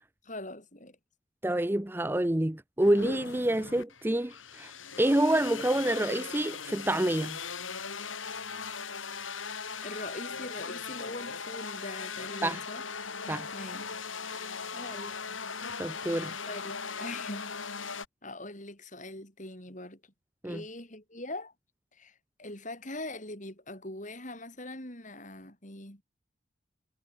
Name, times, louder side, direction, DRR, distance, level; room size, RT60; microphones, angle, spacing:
voice 1, 0.2-1.0 9.8-12.8 13.5-13.9 14.7-15.1 16.5-17.9 18.2-20.0 20.4-21.5 21.9-26.0, left 2 dB, 40° left, 7.7 m, -42 dB
voice 2, 1.4-4.7 5.0-7.4 12.4-12.6 13.3-13.5 14.4-14.5 15.8-16.3 20.4-20.6, right 1 dB, 10° right, 0.6 m, -27 dB
sound 1, 2.8-18.1, left 5 dB, 85° left, 6.6 m, -39 dB
head